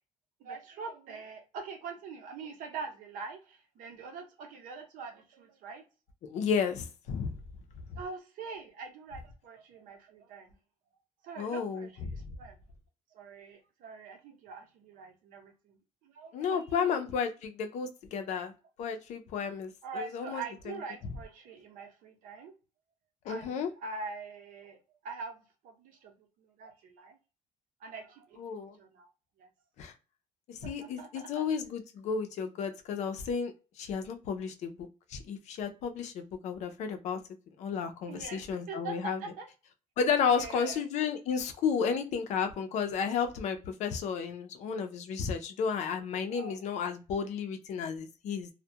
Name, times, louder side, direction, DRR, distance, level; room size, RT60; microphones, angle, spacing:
voice 1, 0.4-5.8 8.0-10.5 11.2-12.6 13.1-15.8 16.0-16.9 18.1-18.4 19.8-22.5 23.3-26.1 26.4-27.2 27.8-29.1 29.4-29.5 30.6-31.4 38.1-39.5 40.3-40.8 46.3-46.6, right 4 dB, 70° right, 0.8 m, -44 dB
voice 2, 6.2-7.4 7.9-8.0 11.4-12.2 16.3-18.5 18.8-20.7 23.2-23.7 28.4-28.8 29.8-29.9 30.5-33.5 33.8-34.8 35.1-37.2 37.6-39.2 40.0-48.5, left 6 dB, 55° left, 0.5 m, -32 dB
2.3 x 2.1 x 2.6 m
cardioid pair, 175°, 14 cm